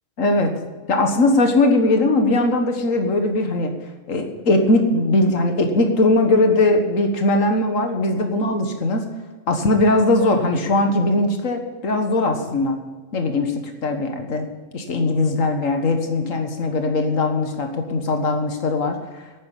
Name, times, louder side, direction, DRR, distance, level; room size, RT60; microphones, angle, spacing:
voice 1, 0.2-0.5 0.9-3.7 4.1-9.1 9.5-12.8 13.1-13.5 13.8-14.5 14.7-19.2, left 2 dB, 85° left, 4 dB, 1.9 m, -20 dB
11.5 x 9.5 x 8.5 m, 1.3 s
omnidirectional pair, 1.3 m